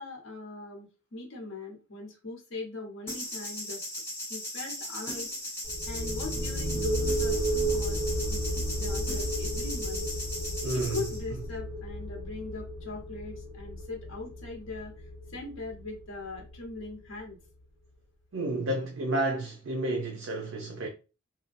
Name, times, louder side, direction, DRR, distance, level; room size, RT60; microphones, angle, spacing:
voice 1, 0.0-3.8 4.3-5.3 5.9-8.0 8.3-10.1 10.7-14.9 15.3-17.4, left 3 dB, 80° left, 1.0 m, -40 dB
sound 1, 3.1-11.2, left 1 dB, 10° left, 0.8 m, -37 dB
sound 2, 5.6-17.2, right 1 dB, 25° right, 1.2 m, -33 dB
voice 2, 10.6-11.0 18.3-20.9, right 2 dB, 75° right, 0.5 m, -31 dB
2.7 x 2.2 x 2.5 m
head